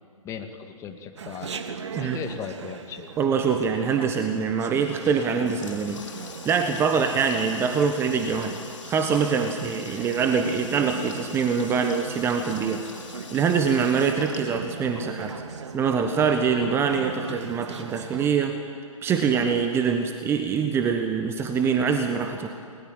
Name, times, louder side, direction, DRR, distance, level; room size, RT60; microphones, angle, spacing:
voice 1, 0.2-1.5 2.0-3.1, left 7 dB, 15° left, 5 dB, 2.0 m, -37 dB
Chatter, 1.2-18.3, right 6 dB, 55° right, 2.0 m, -39 dB
voice 2, 3.2-6.0 6.4-8.6 8.9-15.3 15.7-18.6 19.0-22.5, right 6 dB, 15° right, 6 dB, 1.3 m, -24 dB
Water tap faucet, 5.0-15.2, left 5 dB, 60° left, 3.4 m, -44 dB
29.5 x 21.5 x 9.1 m, 2.3 s
figure-of-eight pair, 130°, 18 cm